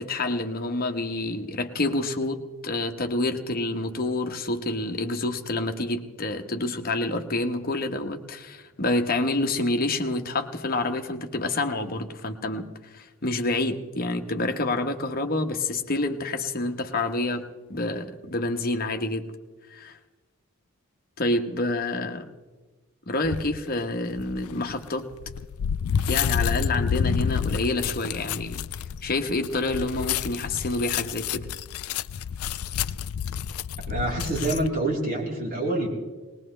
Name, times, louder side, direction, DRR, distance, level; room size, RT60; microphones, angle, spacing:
voice 1, 0.0-19.3 19.7-20.0 21.2-22.3 23.1-25.1 26.1-28.6 29.0-31.5, left 2 dB, 45° left, 1.1 m, -28 dB
sound 1, 23.2-23.6 24.2-34.7, left 7 dB, 85° left, 0.4 m, -29 dB
voice 2, 33.9-35.9, right 2 dB, 40° right, 3.8 m, -26 dB
21.0 x 20.0 x 3.3 m
head